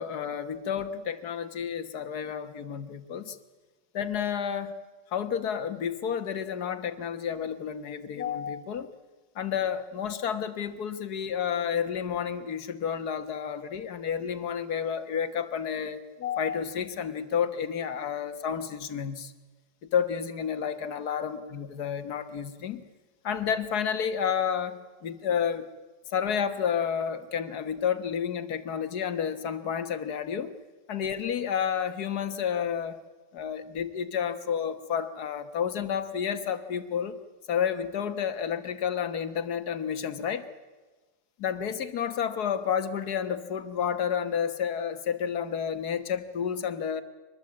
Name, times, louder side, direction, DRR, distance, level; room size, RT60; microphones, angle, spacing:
voice 1, 0.0-3.4 3.9-4.7 5.1-8.9 9.4-19.3 19.9-22.8 23.2-25.7 26.1-30.5 30.9-33.0 33.3-37.2 37.5-40.5 41.4-47.0, left 8 dB, 65° left, 11 dB, 1.8 m, -30 dB
24.0 x 20.5 x 8.6 m, 1.3 s
omnidirectional pair, 1.9 m